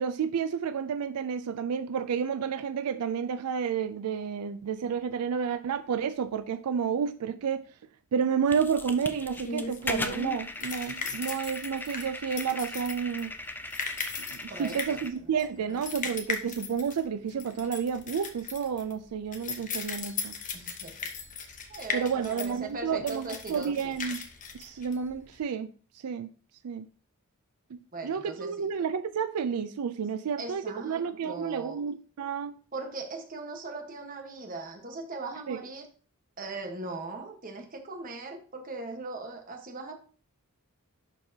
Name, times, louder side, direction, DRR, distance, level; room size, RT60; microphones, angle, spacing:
voice 1, 0.0-7.7 8.1-13.3 14.3-20.3 21.9-24.2 24.5-25.7 26.0-26.3 26.6-26.9 27.7-32.6 35.5-35.6, right 7 dB, 90° right, 0.4 m, -30 dB
sound 1, 8.5-15.1, left 2 dB, 10° left, 0.4 m, -38 dB
sound 2, 8.7-25.4, left 4 dB, 35° left, 1.0 m, -38 dB
voice 2, 14.5-15.0 20.5-20.9 21.7-23.9 27.9-28.7 30.4-31.8 32.7-35.9 36.4-39.9, right 3 dB, 40° right, 1.3 m, -39 dB
11.5 x 4.4 x 2.8 m
head